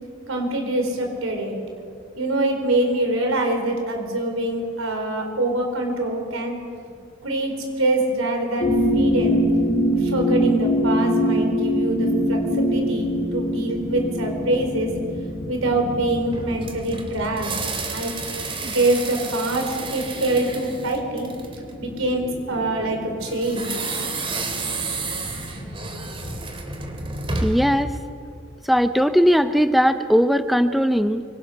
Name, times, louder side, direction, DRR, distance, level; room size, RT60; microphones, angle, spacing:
voice 1, 0.3-1.6 2.2-6.5 7.2-9.4 10.0-14.9 15.5-17.6 17.9-18.1 18.6-21.3 21.8-23.7, right 2 dB, 80° right, 3 dB, 4.3 m, -24 dB
sound 1, 8.6-26.4, equal, 40° left, 2.4 m, -25 dB
sound 2, 16.3-21.7 23.4-27.8, right 3 dB, 25° right, 2.4 m, -31 dB
voice 2, 27.4-28.0 28.6-31.2, equal, ahead, 10 dB, 0.5 m, -19 dB
24.5 x 24.0 x 5.8 m, 2.4 s
head